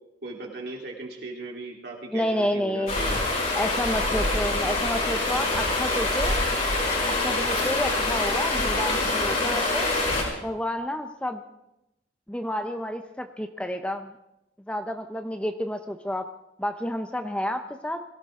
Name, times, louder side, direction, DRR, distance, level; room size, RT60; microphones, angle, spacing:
voice 1, 0.2-3.2, right 2 dB, 60° right, -1 dB, 3.6 m, -37 dB
voice 2, 2.1-3.0 3.5-6.4 7.1-9.9 10.4-11.4 12.3-14.1 14.7-16.3 16.6-18.0, equal, 5° left, 7 dB, 0.7 m, -30 dB
Stream, 2.9-10.2, left 2 dB, 45° left, 5.5 m, -25 dB
22.0 x 16.5 x 3.7 m, 0.88 s
head